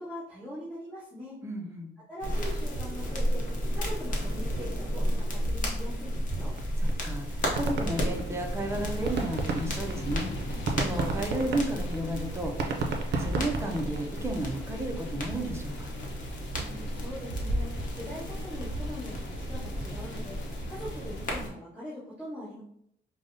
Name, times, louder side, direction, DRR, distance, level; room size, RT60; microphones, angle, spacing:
voice 1, 0.0-1.3 2.1-3.4 3.7-6.5 16.6-20.4 20.7-22.6, equal, 10° left, -12 dB, 1.2 m, -42 dB
voice 2, 1.4-1.9 6.8-7.3 7.5-10.3 10.8-12.5 13.2-15.9, right 1 dB, 15° right, 2 dB, 0.4 m, -33 dB
sound 1, 2.2-21.5, equal, 45° left, 0.7 m, -33 dB
sound 2, 6.6-6.7 6.9-7.0 7.3-8.6 8.9-14.2, right 3 dB, 70° right, 0.5 m, -32 dB
sound 3, 7.2-21.4, equal, 80° left, 0.8 m, -41 dB
5.0 x 2.0 x 2.6 m, 0.74 s
wide cardioid pair, 180°, 18 cm